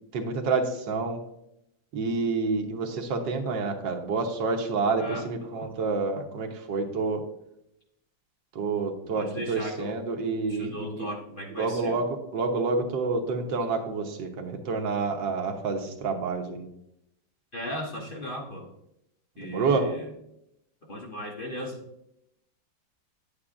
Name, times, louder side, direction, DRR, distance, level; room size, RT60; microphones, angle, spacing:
voice 1, 0.1-1.2 1.9-7.2 8.5-11.1 11.6-16.7 19.4-19.9, right 4 dB, 80° right, 3 dB, 1.7 m, -28 dB
voice 2, 5.0-5.7 9.1-10.0 10.5-12.0 17.5-18.7 19.4-20.1 20.9-21.8, equal, 35° left, -1 dB, 0.9 m, -36 dB
9.7 x 8.4 x 2.5 m, 0.80 s
omnidirectional pair, 1.9 m